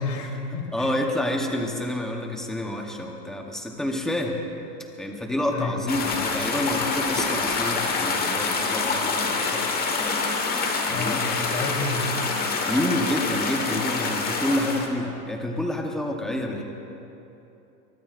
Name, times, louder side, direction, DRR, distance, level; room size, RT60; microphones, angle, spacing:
voice 1, 0.0-1.0 5.5-6.0 10.9-12.1, left 3 dB, 55° left, 1 dB, 3.4 m, -31 dB
voice 2, 0.7-4.4 5.0-9.8 10.9-11.2 12.7-16.6, left 1 dB, ahead, 1 dB, 0.8 m, -28 dB
sound 1, 5.9-14.9, left 4 dB, 20° left, 1.3 m, -26 dB
23.0 x 23.0 x 2.5 m, 2.9 s
supercardioid pair, 150°, 48 cm